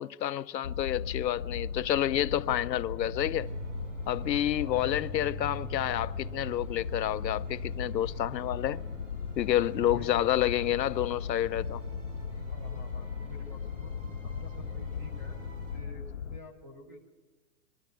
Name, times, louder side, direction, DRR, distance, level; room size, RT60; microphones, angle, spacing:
voice 1, 0.0-3.5 4.1-8.8 9.4-11.8, left 12 dB, 85° left, 0.7 m, -29 dB
sound 1, 0.6-16.4, left 7 dB, 45° left, 0.5 m, -38 dB
voice 2, 2.5-2.8 4.3-4.9 9.9-10.6 12.5-13.9 14.2-15.4 15.7-17.1, left 2 dB, 10° right, 0.8 m, -50 dB
sound 2, 3.2-15.8, right 4 dB, 50° right, 5.8 m, -45 dB
22.0 x 13.0 x 9.2 m
hypercardioid pair, 180°, 49 cm